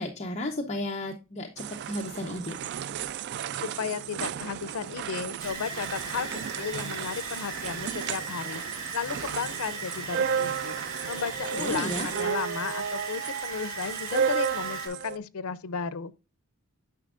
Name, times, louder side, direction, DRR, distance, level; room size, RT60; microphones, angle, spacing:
voice 1, 0.0-2.6 11.5-12.1, left 1 dB, 30° left, 0.7 m, -33 dB
sound 1, 1.6-15.2, right 8 dB, 50° right, 0.3 m, -33 dB
voice 2, 3.5-10.8 11.1-16.1, left 6 dB, 85° left, 0.5 m, -34 dB
sound 2, 5.4-14.9, right 4 dB, 65° right, 2.7 m, -38 dB
9.6 x 6.0 x 2.4 m
head